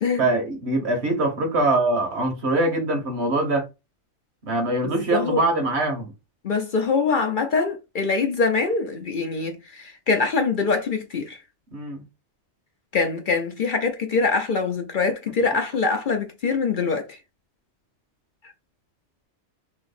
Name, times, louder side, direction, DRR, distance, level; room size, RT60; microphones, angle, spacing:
voice 1, 0.2-3.7 4.4-6.1 11.7-12.0, right 2 dB, 65° right, 1.4 m, -23 dB
voice 2, 6.4-11.4 12.9-17.1, left 4 dB, 50° left, 0.7 m, -23 dB
3.2 x 3.0 x 4.2 m
omnidirectional pair, 1.2 m